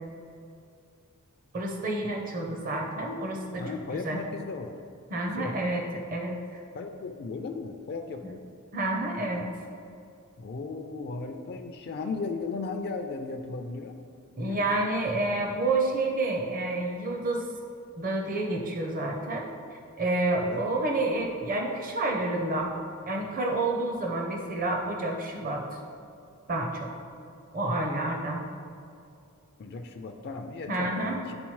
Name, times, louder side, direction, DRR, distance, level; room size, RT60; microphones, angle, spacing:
voice 1, 1.5-3.6 4.0-4.2 5.1-5.8 6.1-6.6 8.7-9.5 14.4-17.4 18.0-22.7 23.1-25.6 26.5-26.9 27.5-28.4 30.7-31.2, right 2 dB, 40° right, 1 dB, 0.7 m, -29 dB
voice 2, 3.5-4.8 5.3-5.5 6.7-8.4 10.4-14.0 14.4-14.9 20.3-20.6 29.6-31.4, left 4 dB, 45° left, 5 dB, 0.3 m, -36 dB
10.5 x 3.8 x 3.1 m, 2.4 s
head